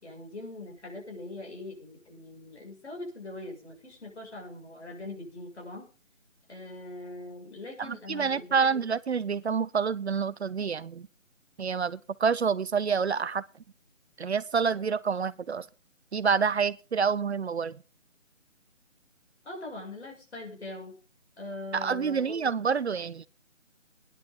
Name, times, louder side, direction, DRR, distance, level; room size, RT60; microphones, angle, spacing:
voice 1, 0.0-5.9 6.5-8.8 19.4-20.9 21.4-22.5, left 2 dB, 60° left, 6.7 m, -42 dB
voice 2, 7.8-11.1 11.6-13.4 14.2-15.7 16.1-17.8 21.7-23.3, right 6 dB, 60° right, 0.6 m, -28 dB
18.0 x 10.5 x 3.8 m
figure-of-eight pair, 160°, 38 cm